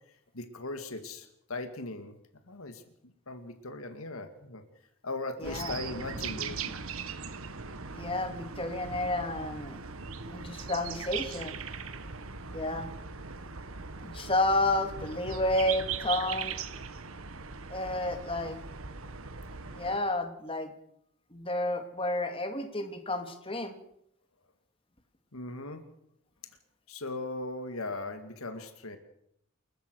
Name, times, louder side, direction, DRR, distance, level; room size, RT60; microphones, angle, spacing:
voice 1, 0.3-2.2 2.5-2.8 3.3-4.6 5.0-6.7 25.3-25.8 26.9-29.0, left 2 dB, 85° left, 8 dB, 2.2 m, -38 dB
voice 2, 5.4-5.7 7.9-9.8 10.3-11.6 12.5-12.9 14.0-16.6 17.7-18.6 19.7-20.7 21.3-23.7, left 1 dB, 25° left, 7 dB, 2.4 m, -31 dB
sound 1, 5.4-20.0, right 6 dB, 75° right, 1.5 m, -39 dB
29.0 x 14.5 x 6.4 m, 0.73 s
head